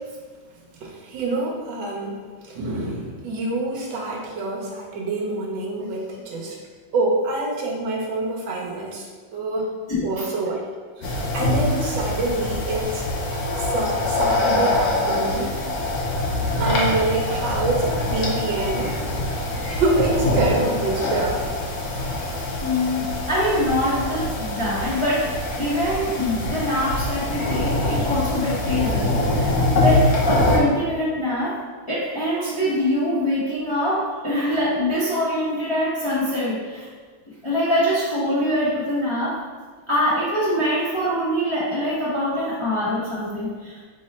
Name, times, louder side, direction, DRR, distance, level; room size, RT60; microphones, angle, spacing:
voice 1, 0.8-6.6 6.9-9.1 9.3-9.8 10.0-10.6 11.0-13.0 13.6-15.9 16.6-19.0 19.7-21.5, right 2 dB, 70° right, -2 dB, 1.5 m, -26 dB
voice 2, 9.9-10.2 11.0-11.1 22.6-25.3 25.6-31.5 31.9-36.8 37.4-39.3 39.9-43.8, equal, 30° left, -10 dB, 0.5 m, -24 dB
sound 1, 11.0-30.6, left 2 dB, 65° left, 1.0 m, -24 dB
5.4 x 2.1 x 4.1 m, 1.5 s
omnidirectional pair, 2.2 m